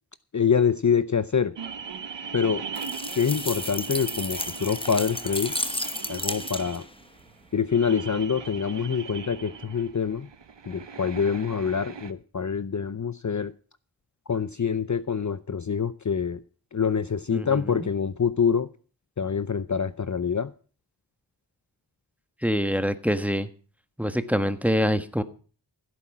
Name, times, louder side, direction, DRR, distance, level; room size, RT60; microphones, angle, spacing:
voice 1, 0.3-1.5 2.3-2.6 3.2-5.5 6.1-6.8 7.5-10.3 10.7-13.5 14.3-16.4 16.7-18.7 19.2-20.5, left 6 dB, 45° left, 0.7 m, -25 dB
sound 1, 1.6-12.1, right 6 dB, 80° right, 1.0 m, -39 dB
sound 2, 2.7-6.9, left 1 dB, 10° left, 1.1 m, -33 dB
voice 2, 17.3-17.9 22.4-23.5 24.0-25.2, equal, 5° right, 1.3 m, -25 dB
15.5 x 8.6 x 6.0 m
wide cardioid pair, 50°, 43 cm